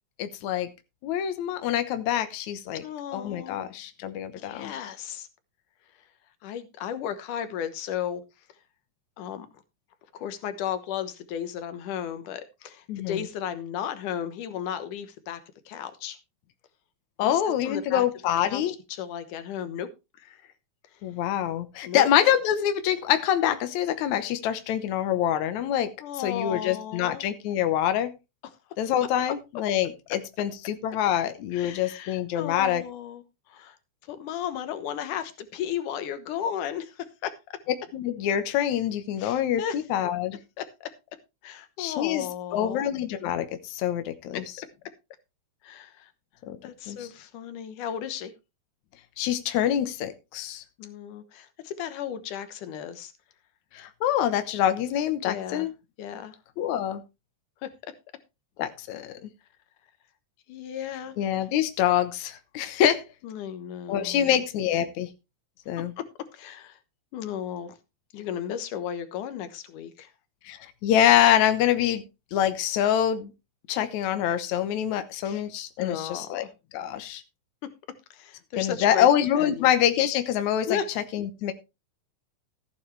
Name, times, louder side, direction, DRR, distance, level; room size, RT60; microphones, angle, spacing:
voice 1, 0.2-0.7 1.0-2.8 3.1-4.7 12.9-13.2 17.2-18.7 21.0-25.9 26.2-28.1 28.8-32.8 37.9-40.4 41.8-42.3 42.5-44.4 46.5-46.6 46.9-47.1 49.2-50.6 53.7-55.7 56.6-57.0 58.6-59.1 61.2-63.0 63.9-65.1 65.7-65.9 70.5-72.0 72.3-73.3 73.7-76.4 76.7-77.2 78.6-80.8 81.1-81.5, left 10 dB, 75° left, 9 dB, 2.3 m, -25 dB
voice 2, 2.8-3.6 4.4-5.3 6.4-8.2 9.2-9.5 10.1-16.2 17.2-18.0 18.4-19.9 20.2-20.5 21.9-22.1 26.0-27.2 31.5-33.8 34.1-37.6 39.2-39.8 40.6-40.9 41.4-42.8 44.3-44.4 45.6-46.1 46.6-48.3 50.8-53.1 55.2-55.7 56.0-56.4 57.6-57.9 60.5-61.1 63.2-64.3 66.3-66.8 67.1-67.7 68.1-70.1 75.2-75.4 75.8-76.5 78.1-79.1 79.4-79.7 80.7-80.9, left 9 dB, 90° left, 10 dB, 2.7 m, -35 dB
14.5 x 9.2 x 3.3 m, 0.27 s
omnidirectional pair, 3.5 m